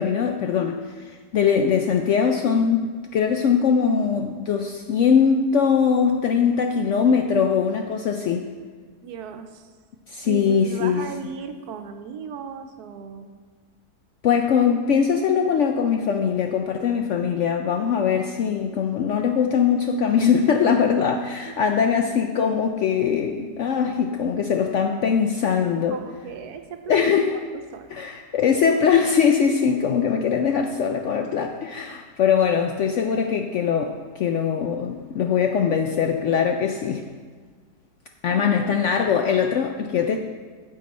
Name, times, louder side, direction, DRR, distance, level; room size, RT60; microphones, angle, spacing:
voice 1, 0.0-8.4 10.1-11.0 14.2-25.9 26.9-27.4 27.9-37.0 38.2-40.2, left 7 dB, 70° left, 4 dB, 0.7 m, -21 dB
voice 2, 9.0-9.7 10.3-13.3 20.7-20.8 21.5-21.6 25.9-28.0 38.3-38.8, right 7 dB, 75° right, 7 dB, 1.2 m, -37 dB
9.5 x 7.6 x 4.1 m, 1.5 s
omnidirectional pair, 1.7 m